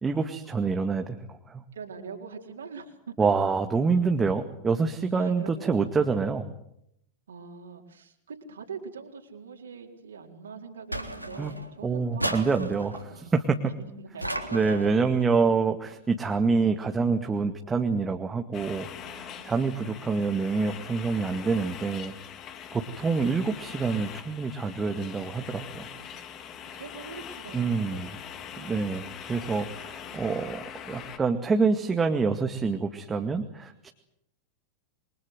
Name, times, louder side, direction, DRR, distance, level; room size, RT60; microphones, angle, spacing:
voice 1, 0.0-1.6 3.2-6.5 11.4-11.5 11.8-12.9 13.3-13.4 14.5-18.9 19.2-22.1 22.7-25.9 27.5-28.1 28.6-33.9, right 4 dB, 15° right, 5 dB, 2.1 m, -26 dB
voice 2, 1.7-3.2 5.1-5.9 7.3-13.3 13.8-14.4 15.1-15.3 19.0-19.9 22.7-23.3 25.9-28.7 29.6-30.3, right 5 dB, 70° right, 2 dB, 4.2 m, -44 dB
sound 1, 10.9-11.7 12.2-13.1 14.2-15.0, right 1 dB, 90° right, 3.5 m, -34 dB
sound 2, 18.5-31.2, left 8 dB, 35° left, 3.3 m, -42 dB
28.0 x 24.5 x 8.0 m, 0.77 s
figure-of-eight pair, 90°, 0 cm